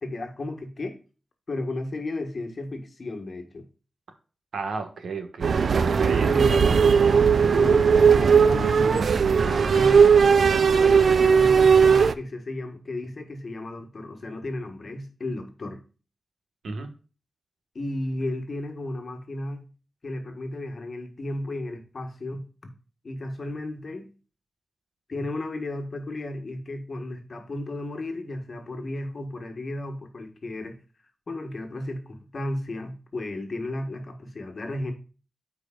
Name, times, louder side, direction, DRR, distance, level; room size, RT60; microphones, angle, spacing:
voice 1, 0.0-1.0 1.5-3.6 6.3-6.8 7.5-9.1 9.4-10.1 10.6-15.8 17.7-19.7 20.0-22.5 23.0-24.1 25.1-30.8 31.3-34.9, left 2 dB, 40° left, 1.5 m, -34 dB
voice 2, 4.5-5.7 6.0-6.8 16.6-16.9, right 4 dB, 85° right, 1.5 m, -32 dB
sound 1, 5.4-12.1, right 6 dB, 60° right, 0.4 m, -18 dB
13.5 x 4.8 x 2.4 m
wide cardioid pair, 155°, 0 cm